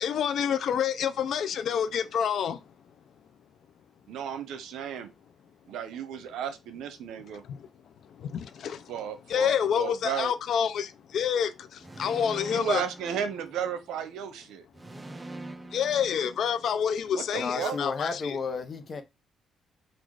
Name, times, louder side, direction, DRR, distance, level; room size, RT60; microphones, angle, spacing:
voice 1, 0.0-2.6 8.6-8.8 9.3-10.9 11.1-11.5 12.0-12.8 15.7-18.4, left 8 dB, 65° left, 0.5 m, -27 dB
voice 2, 4.1-5.1 5.7-7.4 8.9-10.3 12.5-14.7 17.1-17.8, right 8 dB, 85° right, 0.8 m, -34 dB
sound 1, 11.8-14.0 14.7-17.0, right 1 dB, 20° right, 0.6 m, -44 dB
voice 3, 17.3-19.0, left 4 dB, 45° left, 0.9 m, -32 dB
4.0 x 2.5 x 4.7 m
cardioid pair, 90°, 0 cm